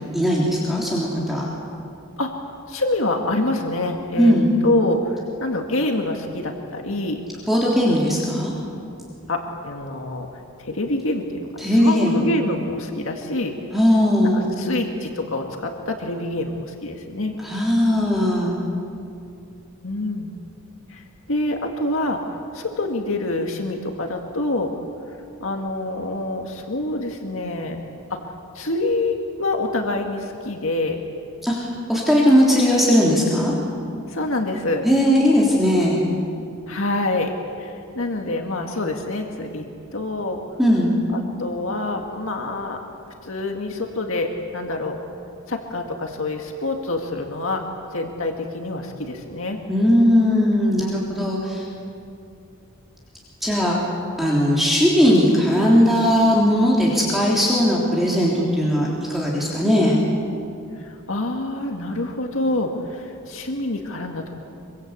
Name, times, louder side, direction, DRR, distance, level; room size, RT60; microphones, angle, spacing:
voice 1, 0.0-1.4 4.2-4.5 7.5-8.5 11.6-12.2 13.7-14.5 17.4-18.6 31.4-33.5 34.8-36.0 40.6-40.9 49.7-51.7 53.4-53.8 54.2-60.0, equal, ahead, -5 dB, 3.5 m, -18 dB
voice 2, 2.7-4.3 4.6-7.2 9.3-10.3 10.6-13.5 14.2-17.3 19.8-20.3 20.9-24.7 25.4-27.8 28.1-31.0 33.0-33.2 34.1-34.9 36.7-39.7 39.9-40.4 41.1-42.8 43.2-45.0 45.5-47.6 47.9-49.6 53.6-53.8 59.6-59.9 60.8-64.5, left 2 dB, 65° left, 2 dB, 2.1 m, -26 dB
25.0 x 24.5 x 8.3 m, 2.5 s
head